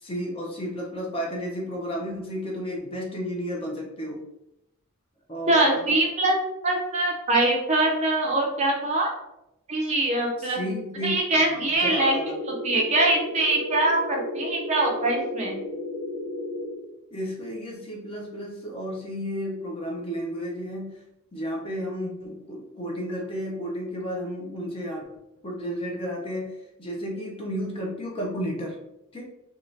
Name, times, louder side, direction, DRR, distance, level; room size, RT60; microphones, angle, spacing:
voice 1, 0.0-4.2 5.3-6.0 10.4-11.2 11.5-12.4 17.1-20.9 21.3-25.0 25.4-26.5 26.8-28.8 29.1-29.2, equal, 25° left, -1 dB, 0.5 m, -32 dB
voice 2, 5.5-6.4 6.6-9.1 9.7-10.6 11.0-12.2 12.5-15.6, right 2 dB, 30° right, 0 dB, 0.4 m, -23 dB
sound 1, 11.8-16.7, left 1 dB, 80° left, 1.3 m, -33 dB
2.6 x 2.3 x 3.1 m, 0.87 s
head